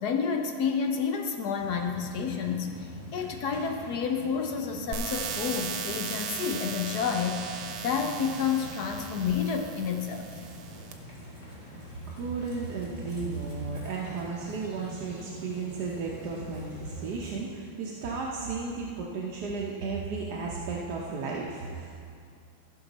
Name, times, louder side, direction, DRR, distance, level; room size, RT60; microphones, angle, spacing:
voice 1, 0.0-10.3, left 6 dB, 70° left, 4 dB, 1.0 m, -30 dB
sound 1, 1.6-17.4, right 1 dB, 15° left, 1.6 m, -45 dB
sound 2, 4.9-10.9, right 6 dB, 75° right, 1.6 m, -37 dB
voice 2, 11.5-21.9, right 4 dB, 60° right, -3 dB, 1.2 m, -34 dB
14.5 x 6.1 x 4.0 m, 2.3 s
omnidirectional pair, 2.3 m